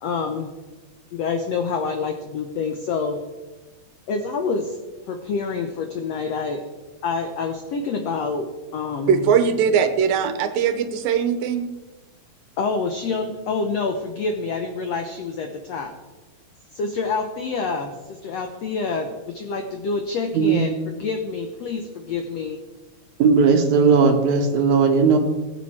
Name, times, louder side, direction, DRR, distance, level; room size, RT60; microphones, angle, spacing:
voice 1, 0.0-0.5 1.1-3.2 4.1-4.8 5.1-6.6 7.0-8.5 8.7-9.2 12.6-15.9 16.7-22.6, left 4 dB, 80° left, 5 dB, 1.4 m, -27 dB
voice 2, 9.1-11.7, right 7 dB, 80° right, 9 dB, 2.5 m, -20 dB
voice 3, 23.2-25.2, right 5 dB, 65° right, 4 dB, 2.2 m, -17 dB
19.5 x 8.0 x 4.3 m, 1.2 s
omnidirectional pair, 4.2 m